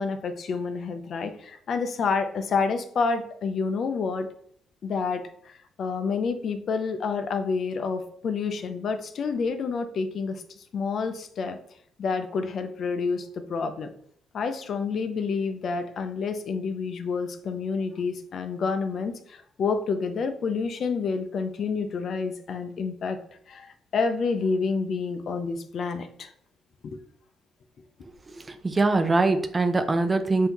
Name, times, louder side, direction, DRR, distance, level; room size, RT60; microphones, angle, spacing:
voice 1, 0.0-4.3 4.8-11.6 12.0-13.9 14.3-23.2 23.5-26.3 26.8-27.0, left 5 dB, 60° left, 9 dB, 0.5 m, -29 dB
voice 2, 28.3-30.5, right 3 dB, 25° right, 8 dB, 0.5 m, -23 dB
5.5 x 2.7 x 2.9 m, 0.63 s
cardioid pair, 90°, 0 cm